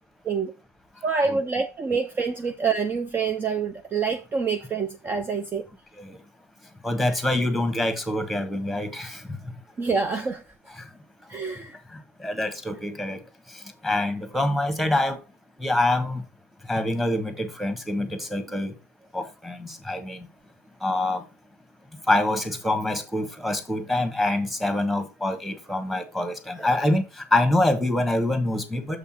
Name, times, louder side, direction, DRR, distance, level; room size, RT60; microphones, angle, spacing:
voice 1, 1.0-5.7 9.8-10.4 11.3-11.7, right 5 dB, 25° right, 0.8 m, -26 dB
voice 2, 6.8-9.2 10.8-10.9 12.2-13.2 13.8-15.2 15.6-16.2 16.7-18.7 19.1-20.3 20.8-21.2 22.1-29.0, left 1 dB, ahead, 1.6 m, -25 dB
7.1 x 5.5 x 4.3 m
figure-of-eight pair, 80°, 9 cm